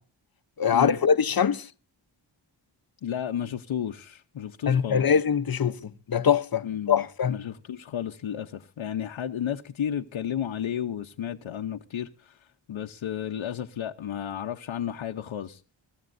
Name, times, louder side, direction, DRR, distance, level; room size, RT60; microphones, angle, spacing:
voice 1, 0.6-1.7 4.7-7.4, left 7 dB, 50° left, 0.7 m, -23 dB
voice 2, 3.0-5.1 6.6-12.4 12.7-15.6, left 9 dB, 80° left, 0.8 m, -32 dB
23.5 x 13.5 x 2.6 m
wide cardioid pair, 80°, 48 cm